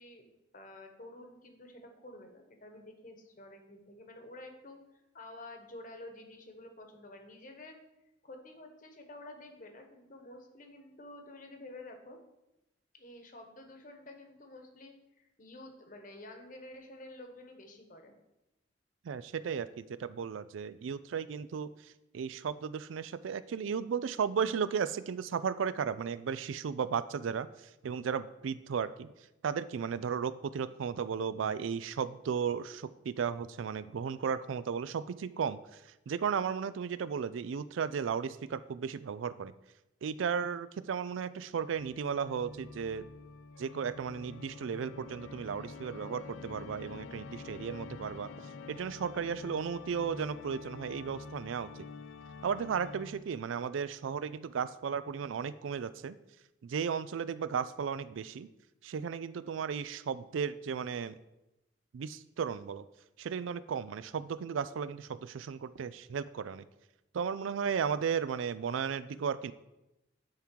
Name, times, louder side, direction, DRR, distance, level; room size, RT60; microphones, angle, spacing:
voice 1, 0.0-7.8 8.2-12.2 12.9-18.1, left 1 dB, 45° left, 4 dB, 1.1 m, -50 dB
voice 2, 19.0-27.5 27.8-29.1 29.4-35.8 36.1-39.5 40.0-43.0 43.6-48.3 48.7-51.7 52.4-56.1 56.6-58.5 58.8-61.2 61.9-62.8 63.2-66.6 67.1-69.5, right 6 dB, 90° right, 15 dB, 0.4 m, -35 dB
Organ, 41.6-53.4, left 4 dB, 85° left, 0.4 m, -47 dB
10.5 x 3.7 x 4.5 m, 0.94 s
head